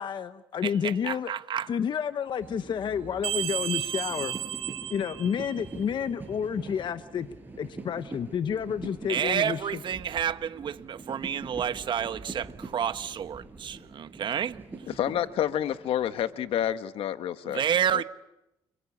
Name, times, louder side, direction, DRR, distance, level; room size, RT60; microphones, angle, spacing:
voice 1, 0.0-1.3 1.7-4.4 4.9-7.3 7.6-9.6, left 7 dB, 55° left, 1.1 m, -30 dB
voice 2, 0.6-1.7 9.1-14.6 17.4-18.0, right 9 dB, 55° right, 1.2 m, -30 dB
sound 1, 2.4-16.8, right 3 dB, 20° right, 7.1 m, -44 dB
sound 2, 3.2-5.8, right 12 dB, 75° right, 5.9 m, -33 dB
voice 3, 15.0-17.6 17.9-18.0, left 10 dB, 75° left, 1.4 m, -29 dB
30.0 x 22.5 x 8.6 m
cardioid pair, 95°, 10 cm